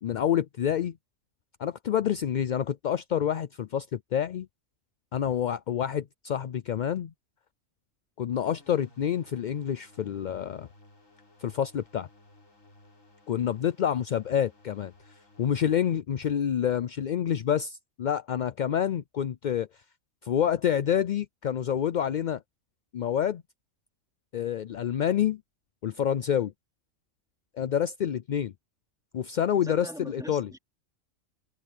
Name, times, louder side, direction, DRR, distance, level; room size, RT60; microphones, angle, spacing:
voice 1, 0.0-0.9 1.6-4.5 5.1-7.1 8.2-10.7 11.4-12.1 13.3-14.9 15.4-19.7 20.2-22.4 22.9-23.4 24.3-25.4 25.8-26.5 27.6-28.5 29.1-30.5, left 9 dB, 60° left, 0.5 m, -28 dB
sound 1, 8.3-16.0, left 2 dB, 85° left, 5.2 m, -58 dB
voice 2, 29.6-30.6, equal, 5° right, 2.8 m, -41 dB
omnidirectional pair, 1.3 m